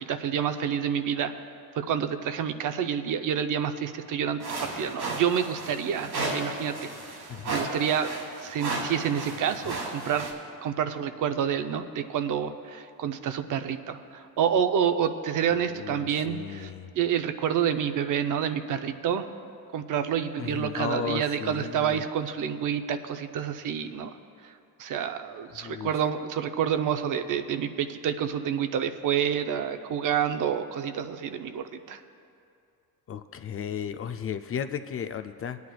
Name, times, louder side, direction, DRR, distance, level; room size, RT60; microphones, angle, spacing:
voice 1, 0.0-1.3 1.8-6.7 7.5-8.1 8.4-10.3 10.6-16.7 17.0-19.3 19.7-24.1 24.8-32.0, right 8 dB, 60° right, 9 dB, 0.6 m, -28 dB
sound 1, 4.4-10.3, right 2 dB, 85° right, 2.8 m, -34 dB
voice 2, 7.3-7.7 15.5-16.9 20.4-22.0 25.5-25.9 33.1-35.6, left 8 dB, 40° left, 9 dB, 0.4 m, -35 dB
21.5 x 9.4 x 2.3 m, 2.5 s
cardioid pair, 115°, 36 cm